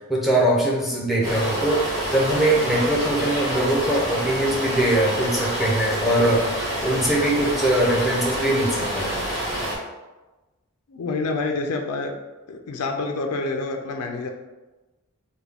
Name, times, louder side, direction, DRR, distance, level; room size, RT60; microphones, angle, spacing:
voice 1, 0.1-9.2, right 1 dB, ahead, -4 dB, 0.6 m, -22 dB
sound 1, 1.2-9.7, right 1 dB, 30° right, 1.4 m, -27 dB
voice 2, 10.9-12.1 12.5-14.3, left 3 dB, 80° left, 3 dB, 0.4 m, -27 dB
3.5 x 2.3 x 3.4 m, 1.1 s
head